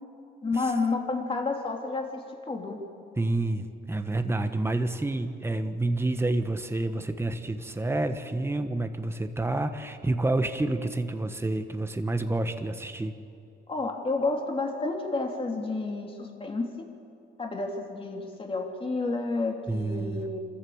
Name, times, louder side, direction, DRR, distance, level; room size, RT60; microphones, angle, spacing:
voice 1, 0.4-2.8 13.7-16.9 17.4-20.4, left 3 dB, 25° left, 1 dB, 3.2 m, -30 dB
voice 2, 3.2-13.1 19.7-20.3, right 2 dB, 10° right, 7 dB, 1.3 m, -29 dB
26.5 x 14.0 x 7.3 m, 2.5 s
cardioid pair, 90°, 20 cm